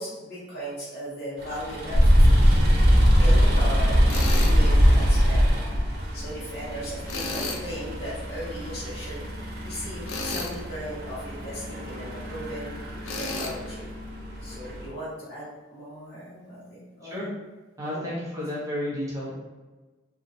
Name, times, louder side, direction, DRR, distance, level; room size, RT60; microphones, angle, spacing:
voice 1, 0.0-2.6 3.2-4.0 4.3-5.4 6.1-9.2 9.6-12.7 13.2-13.9 14.4-17.3 17.8-18.0, equal, 55° left, -9 dB, 1.1 m, -37 dB
sound 1, 1.4-14.9, equal, 50° right, 0.6 m, -23 dB
Tools, 4.1-4.6 7.1-7.7 10.1-10.6 13.0-13.5, left 3 dB, 85° left, 0.4 m, -32 dB
voice 2, 17.8-19.3, left 1 dB, 15° right, -6 dB, 0.7 m, -31 dB
2.9 x 2.3 x 2.6 m, 1.2 s
head